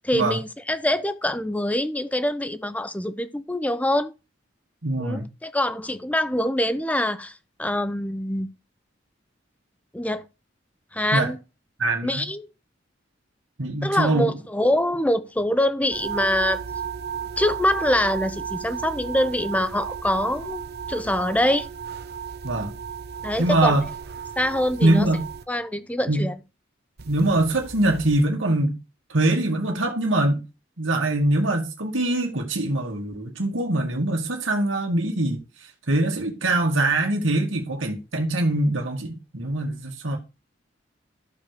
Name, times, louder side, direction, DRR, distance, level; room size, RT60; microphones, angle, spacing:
voice 1, 0.0-4.1 5.0-7.3 7.6-8.5 9.9-10.2 10.9-11.4 12.0-12.5 13.8-16.6 17.4-20.6 20.9-21.7 23.2-23.8 24.4-25.1 25.5-26.4, left 1 dB, 10° left, 0.8 m, -24 dB
voice 2, 4.8-5.3 11.1-11.3 11.8-12.2 13.6-14.3 22.4-22.7 23.4-23.8 24.8-25.2 26.1-26.2 27.1-28.7 29.1-30.4 30.8-35.4 35.9-40.2, right 2 dB, 85° right, 2.0 m, -23 dB
sound 1, 15.9-25.4 27.0-28.3, right 7 dB, 60° right, 0.9 m, -34 dB
12.5 x 4.8 x 6.7 m
head